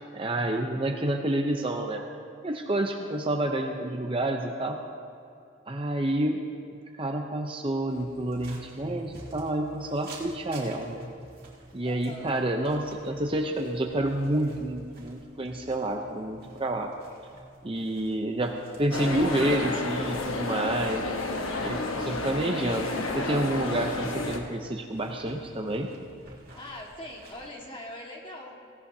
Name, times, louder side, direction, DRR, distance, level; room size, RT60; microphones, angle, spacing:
voice 1, 0.1-2.0 2.4-4.8 5.7-6.4 7.0-11.1 11.7-16.9 17.6-21.0 21.6-22.9 23.1-25.9, right 1 dB, 25° right, 3 dB, 0.6 m, -29 dB
voice 2, 3.0-3.3 11.8-12.3 26.5-28.6, left 1 dB, 25° left, -1 dB, 1.7 m, -43 dB
sound 1, 7.9-27.5, right 1 dB, 45° right, 2.3 m, -50 dB
sound 2, 18.9-24.4, left 2 dB, 75° left, 1.1 m, -31 dB
17.5 x 17.0 x 2.8 m, 2.4 s
head